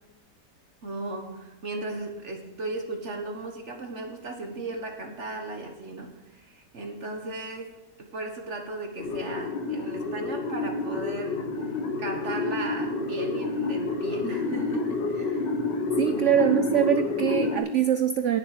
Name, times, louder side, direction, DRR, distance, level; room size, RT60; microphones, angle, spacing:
voice 1, 0.8-15.5 16.1-16.6, right 2 dB, 45° right, 4 dB, 1.4 m, -36 dB
sound 1, 9.0-17.6, left 3 dB, 80° left, 2.1 m, -29 dB
voice 2, 16.0-18.4, right 10 dB, 75° right, 10 dB, 0.7 m, -23 dB
18.0 x 6.9 x 4.9 m, 1.2 s
omnidirectional pair, 1.9 m